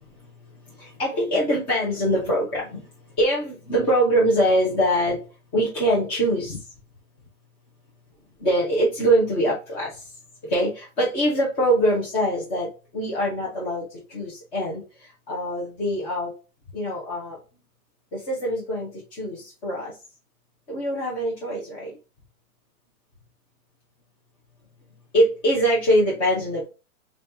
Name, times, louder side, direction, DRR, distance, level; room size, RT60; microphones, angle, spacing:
voice 1, 0.8-2.9 3.2-5.2 5.5-6.6 8.4-10.0 10.4-14.8 15.3-16.3 16.7-17.4 18.1-19.9 20.7-21.9 25.1-26.7, equal, 15° left, -5 dB, 0.5 m, -23 dB
5.1 x 2.4 x 2.5 m, 0.31 s
hypercardioid pair, 155°, 43 cm